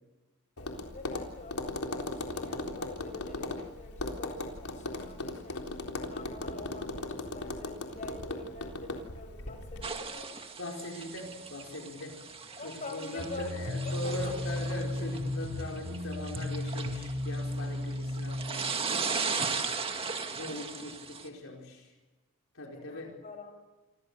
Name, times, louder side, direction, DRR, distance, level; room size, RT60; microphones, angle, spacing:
Tap, 0.6-9.9, left 2 dB, 90° left, 3.8 m, -38 dB
voice 1, 0.6-5.7 6.1-10.4 12.5-14.6 22.7-23.6, left 2 dB, 35° left, 5 dB, 6.2 m, -45 dB
sound 1, 9.8-21.3, right 5 dB, 25° right, 2.0 m, -37 dB
voice 2, 10.6-12.2 12.6-19.6 20.3-21.9 22.5-23.1, left 1 dB, 65° left, 0 dB, 4.7 m, -41 dB
sound 2, 13.2-18.5, left 1 dB, 85° right, 6.1 m, -35 dB
28.5 x 23.5 x 6.9 m, 1.2 s
head